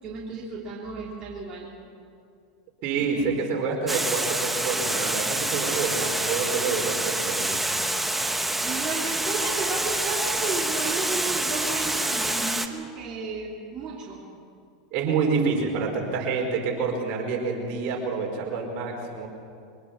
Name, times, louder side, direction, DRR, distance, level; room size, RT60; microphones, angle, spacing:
voice 1, 0.0-1.7 3.0-3.4 8.6-14.2, right 4 dB, 30° right, -5 dB, 3.7 m, -33 dB
voice 2, 2.8-7.6 14.9-19.3, right 5 dB, 50° right, 1 dB, 5.0 m, -27 dB
Water, 3.9-12.7, right 1 dB, 5° right, 1.4 m, -27 dB
24.0 x 20.0 x 6.1 m, 2.4 s
hypercardioid pair, 100°, 3 cm